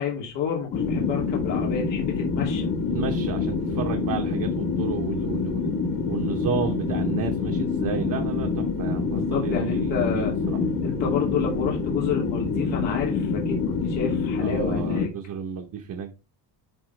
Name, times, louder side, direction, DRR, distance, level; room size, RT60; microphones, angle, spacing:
voice 1, 0.0-2.7 9.1-10.3 10.8-15.1, left 6 dB, 85° left, 2.8 m, -29 dB
sound 1, 0.7-15.1, left 4 dB, 50° left, 1.6 m, -26 dB
voice 2, 2.9-5.7 6.1-10.6 14.4-16.1, right 7 dB, 45° right, 1.0 m, -32 dB
11.0 x 4.3 x 3.3 m
cardioid pair, 165°, 42 cm